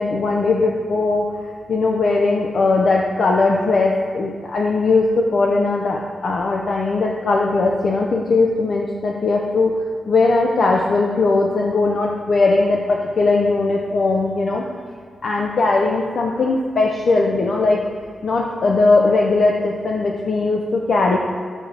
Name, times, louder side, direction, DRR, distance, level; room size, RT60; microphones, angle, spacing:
voice 1, 0.0-9.7 10.1-14.7 15.2-17.8 18.2-21.2, left 3 dB, 55° left, 0 dB, 0.6 m, -19 dB
5.9 x 5.0 x 5.0 m, 2.1 s
wide cardioid pair, 130°, 0 cm